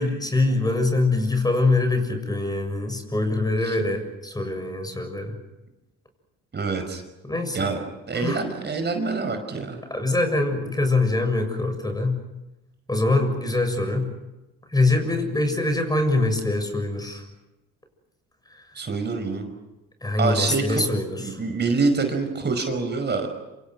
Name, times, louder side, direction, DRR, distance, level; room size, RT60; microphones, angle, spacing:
voice 1, 0.0-5.3 7.2-7.7 8.1-8.5 9.9-12.2 12.9-14.1 14.7-17.2 20.0-21.4, left 2 dB, 15° left, 6 dB, 7.0 m, -24 dB
voice 2, 6.5-7.0 7.5-7.8 8.1-9.8 18.8-19.5 20.2-20.8 21.2-23.3, right 4 dB, 35° right, 6 dB, 5.3 m, -26 dB
27.5 x 27.0 x 6.4 m, 1.0 s
supercardioid pair, 80°, 30 cm